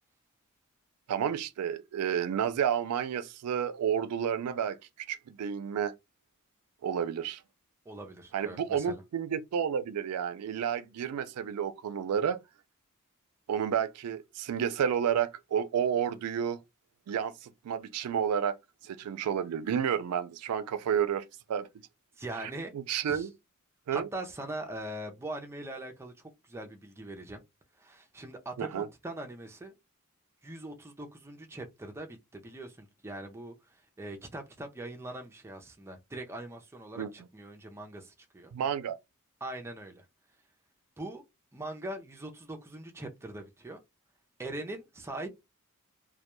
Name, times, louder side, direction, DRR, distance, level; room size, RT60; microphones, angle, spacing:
voice 1, 1.1-4.8 5.1-5.9 6.8-7.4 8.3-12.4 13.5-16.6 17.1-18.6 18.8-21.7 22.4-23.3 23.9-24.1 28.6-28.9 37.0-37.1 38.5-39.0, right 8 dB, 85° right, 0.3 m, -31 dB
voice 2, 7.9-9.0 22.2-22.7 23.0-23.3 23.9-27.4 27.8-29.7 30.4-38.5 39.4-40.0 41.0-41.2 41.5-43.8 44.4-45.3, right 1 dB, 10° right, 0.4 m, -41 dB
2.2 x 2.1 x 2.9 m
head